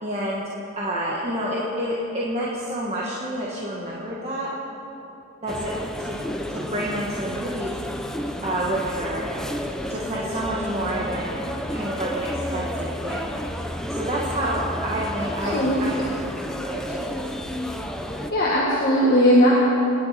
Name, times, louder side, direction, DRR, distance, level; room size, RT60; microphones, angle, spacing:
voice 1, 0.0-4.5 5.4-6.2 6.5-7.7 8.4-9.3 9.8-13.2 13.9-15.9 16.4-17.2, right 1 dB, 30° right, -5 dB, 1.6 m, -29 dB
sound 1, 5.5-18.3, equal, 5° left, 0.7 m, -31 dB
voice 2, 18.3-19.6, equal, 45° left, -5 dB, 1.9 m, -18 dB
26.0 x 10.5 x 4.3 m, 2.9 s
head